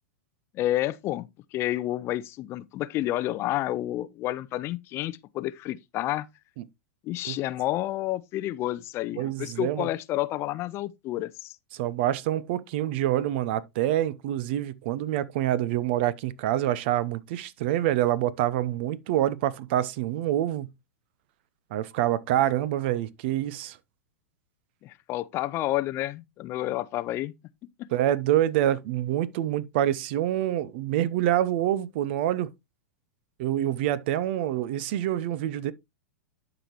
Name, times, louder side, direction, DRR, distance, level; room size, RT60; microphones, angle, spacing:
voice 1, 0.5-6.3 7.0-11.6 24.8-27.3, left 15 dB, 35° left, 0.5 m, -30 dB
voice 2, 9.2-9.9 11.7-20.7 21.7-23.8 27.9-32.5 33.4-35.7, right 12 dB, 50° right, 0.6 m, -26 dB
11.5 x 4.9 x 3.0 m
hypercardioid pair, 100°, 7 cm